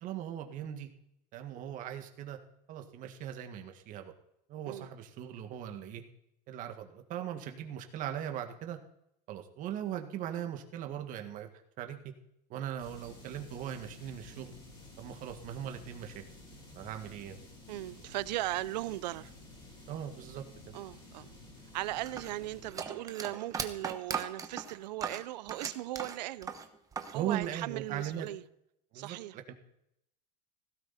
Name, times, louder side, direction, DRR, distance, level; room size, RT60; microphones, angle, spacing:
voice 1, 0.0-0.9 1.3-2.4 2.7-4.1 4.5-6.0 6.5-8.8 9.3-11.5 11.8-12.0 12.5-14.5 15.0-16.2 16.8-17.4 19.9-20.4 27.1-28.3 28.9-29.5, right 10 dB, 40° right, 1.9 m, -39 dB
sound 1, 12.8-22.7, left 2 dB, 25° left, 4.8 m, -52 dB
voice 2, 17.7-19.3 20.7-21.3 21.7-26.5 27.1-28.4 28.9-29.4, right 16 dB, 80° right, 0.7 m, -38 dB
sound 2, 22.0-27.2 27.4-28.3, right 6 dB, 15° right, 1.1 m, -39 dB
16.5 x 14.0 x 4.3 m
supercardioid pair, 145°, 21 cm